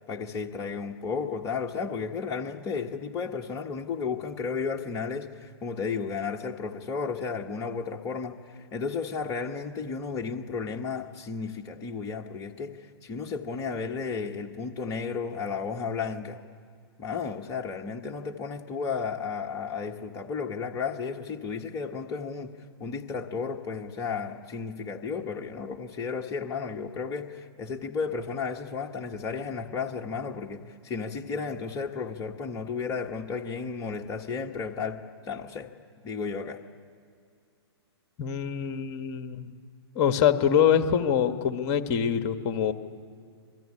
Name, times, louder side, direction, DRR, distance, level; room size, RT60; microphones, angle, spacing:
voice 1, 0.1-16.4 17.0-22.5 22.8-35.0 35.3-35.7 36.0-36.6, left 5 dB, 25° left, 2 dB, 1.4 m, -33 dB
voice 2, 38.2-39.6 39.9-42.7, left 8 dB, 40° left, 8 dB, 1.6 m, -24 dB
27.0 x 21.5 x 9.9 m, 2.3 s
hypercardioid pair, 125°, 14 cm